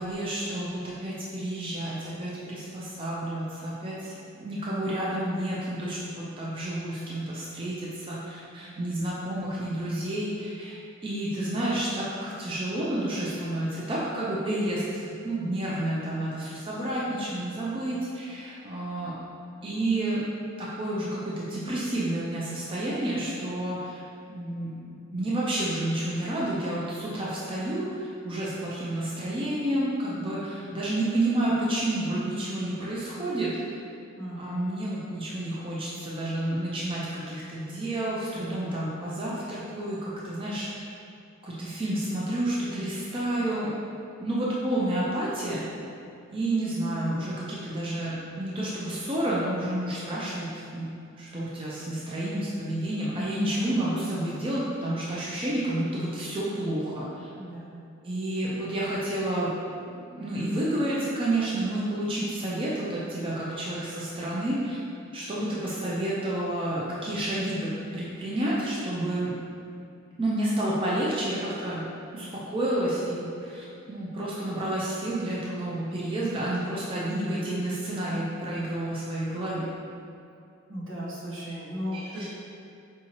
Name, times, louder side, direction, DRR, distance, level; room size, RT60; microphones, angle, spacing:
voice 1, 0.0-19.1 19.6-20.2 20.6-24.0 24.3-24.9 25.1-33.8 34.4-40.9 41.4-43.8 44.2-45.7 46.3-50.9 51.2-57.3 58.0-59.5 60.1-64.8 65.1-69.4 70.2-71.9 72.1-79.7 81.9-82.3, right 1 dB, 25° right, -7 dB, 0.5 m, -30 dB
voice 2, 34.2-34.7 57.4-57.8 80.7-82.3, equal, 70° right, -7 dB, 1.1 m, -36 dB
4.7 x 2.7 x 2.9 m, 2.5 s
head